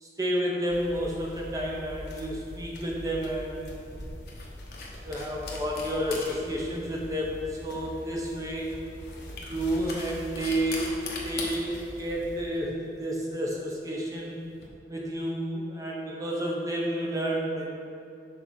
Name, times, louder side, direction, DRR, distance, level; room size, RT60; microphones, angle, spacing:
voice 1, 0.0-4.0 5.0-8.7 9.4-10.9 11.2-14.4 14.9-17.7, equal, 20° right, -2 dB, 0.7 m, -31 dB
sound 1, 0.7-12.5, left 1 dB, 85° left, 1.1 m, -44 dB
sound 2, 2.4-14.7, left 3 dB, 60° left, 0.9 m, -43 dB
6.2 x 3.9 x 5.2 m, 2.6 s
head